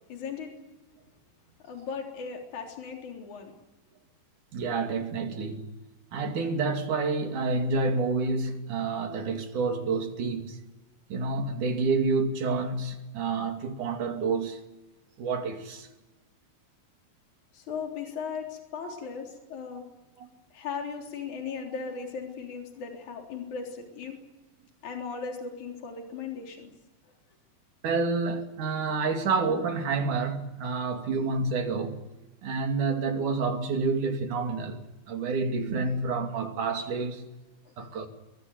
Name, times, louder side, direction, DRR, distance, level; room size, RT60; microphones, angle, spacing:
voice 1, 0.1-0.5 1.6-3.5 17.5-19.8 20.5-24.2 24.8-26.7 27.0-27.1 37.7-37.8, left 5 dB, 55° left, 5.0 m, -37 dB
voice 2, 4.5-5.7 6.1-10.6 11.1-14.6 15.2-15.9 18.8-18.9 20.2-20.3 27.8-32.0 32.4-37.3 37.8-38.1, right 4 dB, 60° right, 4.0 m, -29 dB
23.5 x 22.0 x 9.5 m
omnidirectional pair, 4.1 m